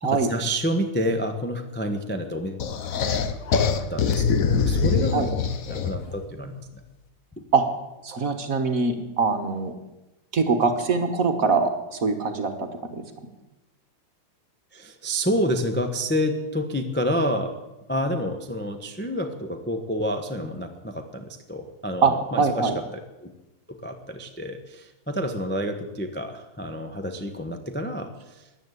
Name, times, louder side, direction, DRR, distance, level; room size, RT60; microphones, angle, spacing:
voice 1, 0.0-2.6 3.9-5.3 5.7-6.7 14.7-17.5 17.9-22.7 23.2-23.3 23.8-28.1, equal, 10° left, 5 dB, 0.6 m, -28 dB
sound 1, 2.6-6.1, left 6 dB, 55° left, 1.0 m, -23 dB
voice 2, 8.0-9.7 10.3-13.0 22.0-22.8, right 4 dB, 45° right, 7 dB, 1.5 m, -23 dB
14.5 x 10.5 x 8.2 m, 1.0 s
omnidirectional pair, 2.4 m